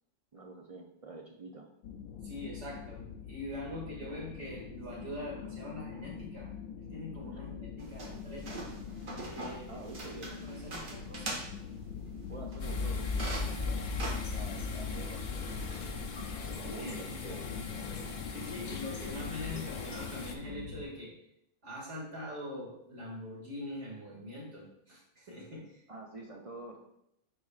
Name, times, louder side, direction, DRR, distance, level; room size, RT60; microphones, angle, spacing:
voice 1, 0.3-1.7 4.0-4.2 7.3-7.4 9.7-10.4 12.3-13.5 14.3-15.5 16.5-17.8 25.9-26.8, right 2 dB, 45° right, 1 dB, 0.5 m, -47 dB
sound 1, 1.8-20.8, left 7 dB, 85° left, 1.0 m, -45 dB
voice 2, 2.2-8.6 9.3-9.8 10.2-11.5 16.7-16.9 18.3-21.1 21.6-25.8, left 1 dB, 60° right, -5 dB, 2.4 m, -43 dB
sound 2, 7.8-15.9, right 2 dB, 90° right, 1.7 m, -44 dB
sound 3, 12.6-20.4, left 4 dB, 45° left, 0.6 m, -37 dB
9.3 x 4.6 x 2.4 m, 0.79 s
omnidirectional pair, 1.3 m